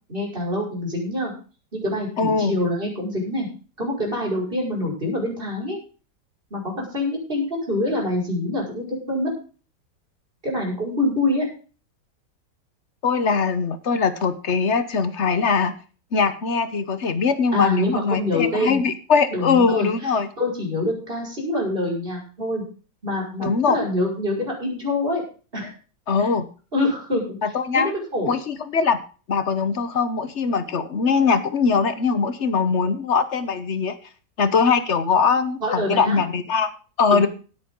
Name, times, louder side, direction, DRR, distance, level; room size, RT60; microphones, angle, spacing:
voice 1, 0.1-1.3 1.7-3.5 3.8-5.8 6.5-9.3 10.4-11.5 17.5-18.8 19.3-20.1 20.4-22.6 23.0-25.2 25.5-25.7 26.7-27.4 27.7-28.3 35.6-36.2 37.1-37.3, left 1 dB, 30° right, -1 dB, 5.9 m, -25 dB
voice 2, 2.2-2.6 13.0-15.8 16.1-20.3 23.4-23.8 26.1-26.5 27.4-27.9 28.3-29.0 29.3-34.0 34.4-36.7 37.0-37.3, left 5 dB, 45° left, 12 dB, 1.2 m, -21 dB
17.5 x 9.4 x 3.8 m, 0.37 s
omnidirectional pair, 1.9 m